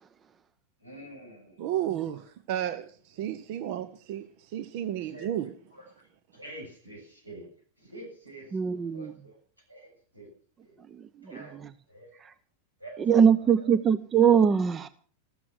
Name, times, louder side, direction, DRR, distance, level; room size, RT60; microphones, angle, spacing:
voice 1, 0.8-2.2 4.9-7.5 7.8-9.4 9.7-10.3 10.6-10.8 11.2-12.2 12.8-13.7, right 1 dB, 85° right, 1 dB, 7.4 m, -48 dB
voice 2, 1.6-5.5, right 11 dB, 45° right, 13 dB, 1.0 m, -33 dB
voice 3, 8.5-9.1 13.1-14.9, right 7 dB, 25° right, 15 dB, 0.8 m, -21 dB
15.0 x 13.5 x 6.2 m, 0.43 s
figure-of-eight pair, 90°, 0 cm